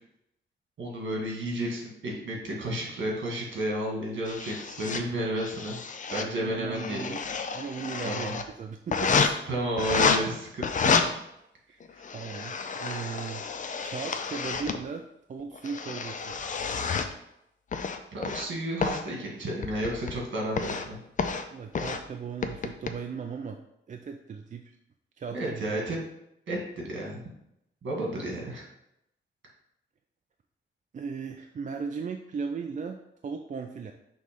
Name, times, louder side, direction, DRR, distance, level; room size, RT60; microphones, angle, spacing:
voice 1, 0.8-5.8 6.1-7.1 8.0-8.3 9.5-11.1 18.1-21.0 25.3-26.0 26.5-27.2 27.8-28.6, right 1 dB, 65° right, -2 dB, 2.1 m, -32 dB
sound 1, 4.3-5.0 5.4-6.3 6.6-8.4 8.9-9.3 9.8-10.2 10.6-11.0 11.8-14.8 15.4-17.1 17.7-18.5 18.8-19.0 19.6-20.2 20.6-20.9 21.2-21.4 21.7-22.0 22.4-22.9, left 5 dB, 40° left, 0.5 m, -29 dB
voice 2, 6.1-7.2 7.5-9.3 12.1-13.5 13.8-16.4 21.5-23.6 23.9-24.8 25.2-26.0 28.0-28.3 30.9-33.0 33.2-33.9, right 5 dB, 40° right, 4 dB, 0.4 m, -37 dB
6.3 x 3.2 x 5.2 m, 0.80 s
wide cardioid pair, 170°, 21 cm